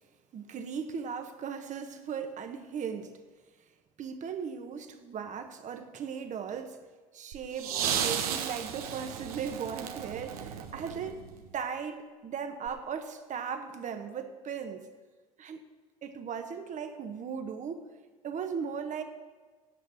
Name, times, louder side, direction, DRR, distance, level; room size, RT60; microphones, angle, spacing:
voice 1, 0.3-3.1 4.0-6.8 7.1-11.2 11.5-14.9 15.4-15.6 16.0-17.9 18.2-19.0, right 7 dB, 40° right, 7 dB, 1.3 m, -37 dB
sound 1, 7.3-11.5 12.7-12.8, right 8 dB, 75° right, 1.1 m, -34 dB
9.4 x 7.8 x 9.2 m, 1.3 s
figure-of-eight pair, 65°, 19 cm